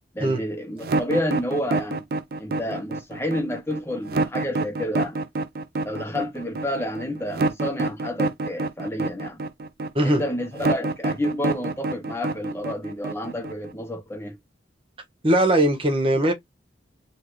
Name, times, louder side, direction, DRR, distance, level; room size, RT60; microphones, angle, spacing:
voice 1, 0.1-2.0 2.4-5.2 5.8-9.4 10.0-14.4, left 1 dB, 15° left, 0.7 m, -29 dB
sound 1, 0.8-13.7, right 2 dB, 50° right, 0.4 m, -27 dB
voice 2, 15.2-16.3, right 1 dB, 30° right, 1.2 m, -20 dB
3.6 x 3.1 x 3.1 m
head